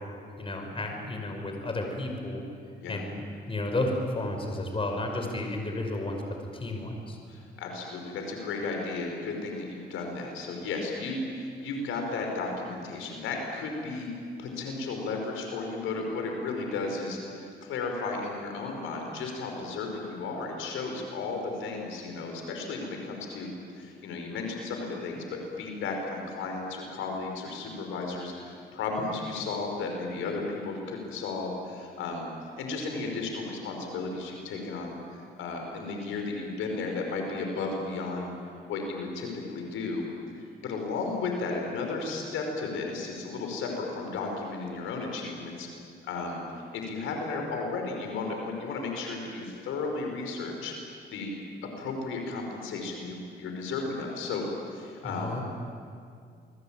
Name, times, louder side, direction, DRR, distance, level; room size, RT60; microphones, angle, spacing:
voice 1, 0.4-2.4 2.9-7.2 55.0-55.4, left 2 dB, 25° left, 3 dB, 5.7 m, -32 dB
voice 2, 7.3-14.1 14.4-32.3 32.6-38.3 38.7-40.1 40.4-45.7 46.0-46.4 46.7-50.7 51.1-51.4 51.8-55.4, left 3 dB, 85° left, 2 dB, 5.4 m, -34 dB
28.0 x 21.5 x 9.1 m, 2.3 s
cardioid pair, 90°, 20 cm